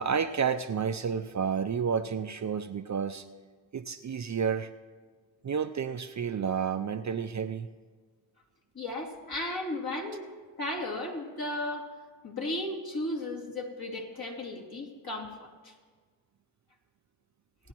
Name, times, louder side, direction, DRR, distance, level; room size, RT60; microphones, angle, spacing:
voice 1, 0.0-3.3 3.7-4.7 5.4-7.7, right 6 dB, 40° right, 9 dB, 0.6 m, -30 dB
voice 2, 8.7-10.2 10.6-11.9 12.2-15.7, left 1 dB, 50° left, -1 dB, 2.6 m, -35 dB
23.0 x 8.9 x 3.0 m, 1.5 s
supercardioid pair, 40°, 46 cm